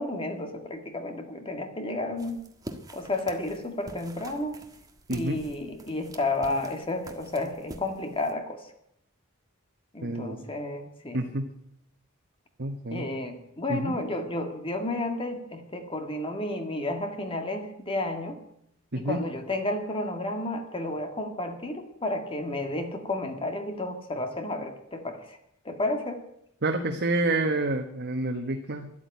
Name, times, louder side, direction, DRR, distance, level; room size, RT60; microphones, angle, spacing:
voice 1, 0.0-2.4 2.9-4.6 5.1-8.7 9.9-11.2 12.9-18.4 18.9-25.4 25.6-26.2, left 2 dB, 25° left, 5 dB, 1.7 m, -32 dB
sound 1, 2.2-8.3, right 1 dB, 15° right, 1.5 m, -46 dB
voice 2, 5.1-5.4 10.0-10.5 11.1-11.5 12.6-13.1 13.7-13.9 18.9-19.2 26.6-28.9, right 2 dB, 50° right, 4 dB, 1.3 m, -28 dB
13.0 x 11.5 x 9.3 m, 0.75 s
head